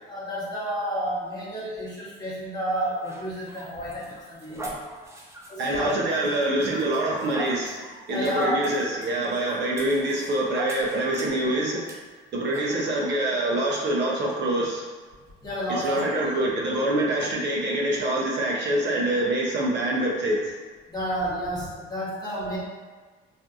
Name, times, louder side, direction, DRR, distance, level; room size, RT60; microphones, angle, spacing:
voice 1, 0.1-4.8 5.5-5.9 8.1-8.7 15.4-16.3 20.9-22.6, equal, 20° left, -8 dB, 1.0 m, -30 dB
sound 1, 2.7-11.4 11.9-12.0 12.5-12.7, right 1 dB, 15° right, 0.4 m, -40 dB
voice 2, 5.6-7.8 8.1-11.9 12.3-14.8 15.7-20.5, right 1 dB, 55° right, -3 dB, 0.6 m, -25 dB
2.5 x 2.5 x 2.3 m, 1.4 s
cardioid pair, 100°, 21 cm